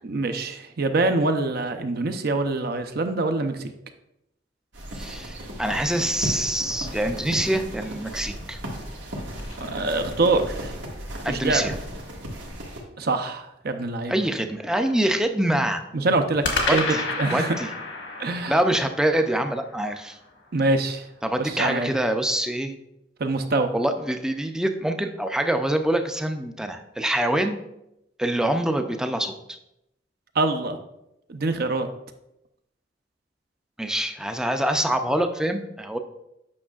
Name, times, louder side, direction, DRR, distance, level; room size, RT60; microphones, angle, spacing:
voice 1, 0.0-3.6 9.6-10.7 11.3-11.6 13.0-14.1 15.9-17.6 18.2-18.6 20.5-21.1 21.4-21.9 23.2-23.7 30.3-30.8 31.3-31.9, right 2 dB, 60° right, 8 dB, 0.6 m, -24 dB
sound 1, 4.7-12.8, equal, 90° right, 1.5 m, -35 dB
voice 2, 5.0-8.6 11.2-11.7 14.1-15.8 16.7-17.0 17.3-17.7 18.5-20.2 21.2-22.7 23.7-27.6 28.2-29.6 33.8-36.0, right 1 dB, 5° right, 6 dB, 0.4 m, -25 dB
sound 2, 8.7-10.6 16.4-20.7, left 3 dB, 85° left, 1.5 m, -32 dB
8.6 x 5.9 x 2.4 m, 0.85 s
head